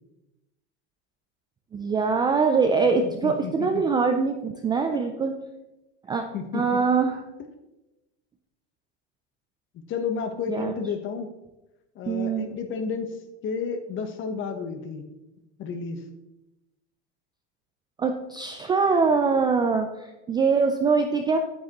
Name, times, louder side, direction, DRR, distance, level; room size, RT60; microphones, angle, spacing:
voice 1, 1.7-5.3 6.1-6.2 6.5-7.2 10.5-10.8 12.1-12.5 18.0-21.4, right 5 dB, 15° right, 4 dB, 0.3 m, -23 dB
voice 2, 3.0-3.8 6.3-6.8 9.9-11.3 12.0-13.1 13.4-15.0 15.6-16.0, left 5 dB, 35° left, 7 dB, 1.1 m, -31 dB
9.2 x 8.5 x 3.0 m, 0.99 s
supercardioid pair, 135°, 34 cm